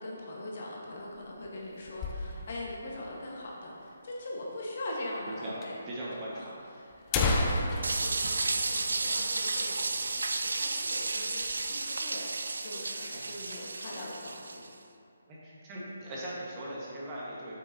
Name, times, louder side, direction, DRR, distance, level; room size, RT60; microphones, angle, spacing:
voice 1, 0.0-5.8 6.1-6.4 6.7-6.8 7.1-10.2 10.5-12.2 12.6-14.7, left 1 dB, 50° left, -3 dB, 1.4 m, -41 dB
sound 1, 0.9-2.7 3.1-3.2 3.4-3.5 4.2-4.3 5.2-5.3 5.6-5.7 6.5-6.6 6.9-9.5 9.8-10.0 10.4-10.6 11.0-11.6, left 2 dB, 20° left, 0.5 m, -32 dB
voice 2, 5.9-6.6 13.1-13.2 15.3-17.6, right 1 dB, 25° right, -7 dB, 1.5 m, -40 dB
sound 2, 7.8-14.7, right 3 dB, 80° right, 0.5 m, -32 dB
7.8 x 6.2 x 2.8 m, 2.5 s
hypercardioid pair, 155°, 0 cm